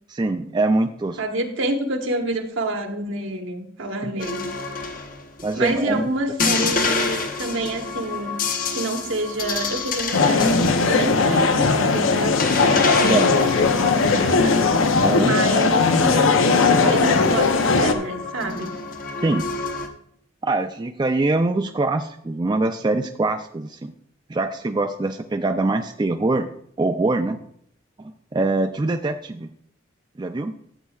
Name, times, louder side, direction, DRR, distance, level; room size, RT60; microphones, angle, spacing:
voice 1, 0.1-1.2 4.0-4.1 5.4-6.1 13.1-13.3 15.0-15.4 19.2-19.5 20.4-23.9 24.3-26.5 26.8-27.4 28.0-29.5 30.2-30.5, right 2 dB, 20° right, 6 dB, 0.3 m, -23 dB
voice 2, 1.2-4.5 5.5-18.8, right 1 dB, 75° right, 3 dB, 1.3 m, -28 dB
sound 1, 4.2-5.9 6.4-15.2 15.5-15.9 16.4-19.9, left 3 dB, 45° left, 0.8 m, -28 dB
sound 2, 10.1-17.9, left 4 dB, 85° left, 0.7 m, -18 dB
12.5 x 8.1 x 2.4 m, 0.67 s
head